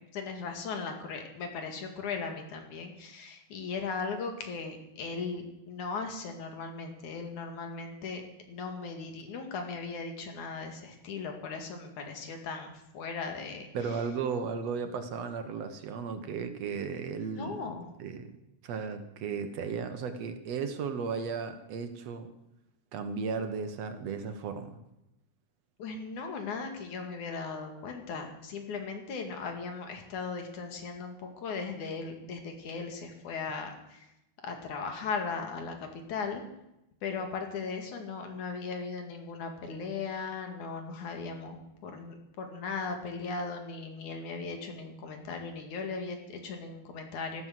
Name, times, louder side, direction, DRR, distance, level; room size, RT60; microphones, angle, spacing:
voice 1, 0.1-8.2 8.5-13.7 17.2-18.0 25.8-34.1 34.4-36.4 37.0-47.5, left 4 dB, 80° left, 5 dB, 3.7 m, -38 dB
voice 2, 13.7-17.7 18.0-18.3 18.6-22.3 22.9-24.7, right 5 dB, 65° right, 8 dB, 2.3 m, -35 dB
14.5 x 12.5 x 7.6 m, 0.88 s
omnidirectional pair, 3.4 m